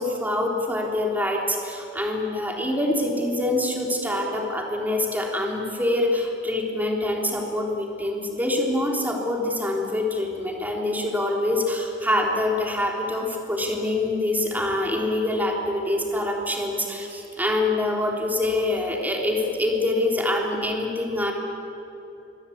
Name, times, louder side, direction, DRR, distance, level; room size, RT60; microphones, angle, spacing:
voice 1, 0.0-21.3, left 1 dB, 10° right, 0 dB, 3.5 m, -25 dB
26.0 x 23.0 x 8.6 m, 2.9 s
head